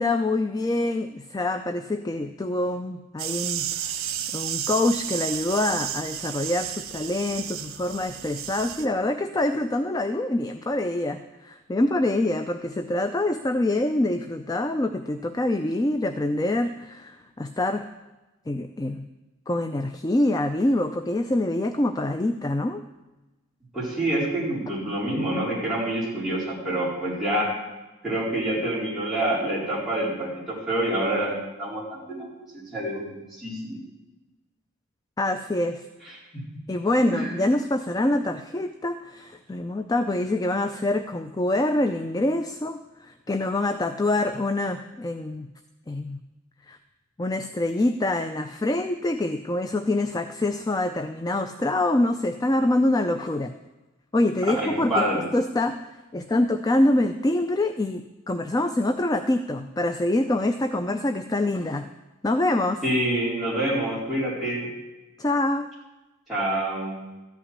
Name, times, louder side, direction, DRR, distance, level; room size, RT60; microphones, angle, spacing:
voice 1, 0.0-3.7 3.9-4.1 4.3-17.9 18.5-19.1 19.5-22.8 35.2-35.8 36.7-45.5 45.9-46.2 46.7-46.8 47.2-53.5 54.1-55.8 56.1-61.9 62.2-62.8 65.2-65.7, left 1 dB, 20° left, 8 dB, 0.4 m, -25 dB
sound 1, 3.2-8.9, right 10 dB, 80° right, 1.1 m, -32 dB
voice 2, 23.7-27.5 28.0-32.3 32.5-33.8 36.3-36.4 37.1-37.3 54.5-55.2 62.8-64.7 66.3-67.0, right 1 dB, ahead, -8 dB, 4.5 m, -27 dB
13.5 x 5.9 x 9.7 m, 1.1 s
head